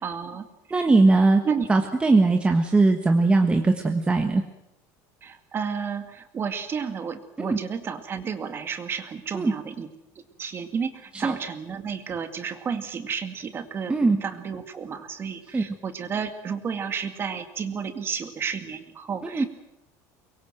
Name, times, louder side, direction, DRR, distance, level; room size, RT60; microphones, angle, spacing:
voice 1, 0.0-0.5 0.7-0.9 1.4-1.7 5.2-9.9 10.4-19.5, right 6 dB, 30° right, 8 dB, 2.2 m, -32 dB
voice 2, 0.7-4.4 7.4-7.6 9.3-9.5 11.1-11.3 13.9-14.2 15.5-15.6 19.2-19.4, right 3 dB, 15° right, 4 dB, 1.5 m, -20 dB
24.0 x 22.0 x 7.9 m, 0.88 s
cardioid pair, 145°, 8 cm